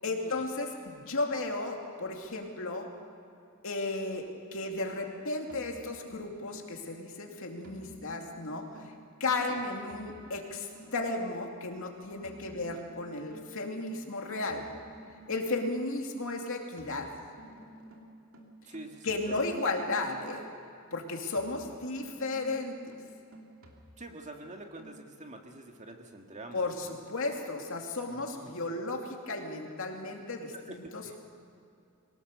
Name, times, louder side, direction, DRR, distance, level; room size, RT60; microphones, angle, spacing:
voice 1, 0.0-2.9 3.6-8.9 9.2-14.6 15.3-17.1 19.0-20.4 20.9-22.8 26.5-31.2, left 2 dB, 65° left, 2 dB, 2.6 m, -34 dB
sound 1, 5.5-6.9 7.6-11.4 12.2-15.9 16.8-20.6 21.4-24.3 24.8-25.0, right 1 dB, 70° right, 2.9 m, -53 dB
voice 2, 18.6-19.4 24.0-27.0 28.1-28.6 30.7-30.8 31.0-31.2, right 2 dB, 35° right, 3 dB, 1.9 m, -46 dB
23.0 x 19.0 x 6.8 m, 2.6 s
head